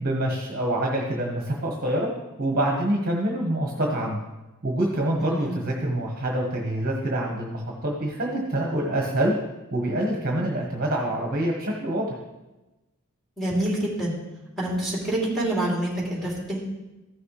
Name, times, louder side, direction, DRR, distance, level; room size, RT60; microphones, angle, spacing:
voice 1, 0.0-2.1 2.4-4.2 4.6-9.3 9.7-12.2, right 1 dB, 40° right, 0 dB, 1.2 m, -26 dB
voice 2, 5.2-5.6 13.4-14.2 14.6-16.6, right 1 dB, ahead, -6 dB, 2.9 m, -27 dB
14.5 x 6.3 x 3.2 m, 1.1 s
head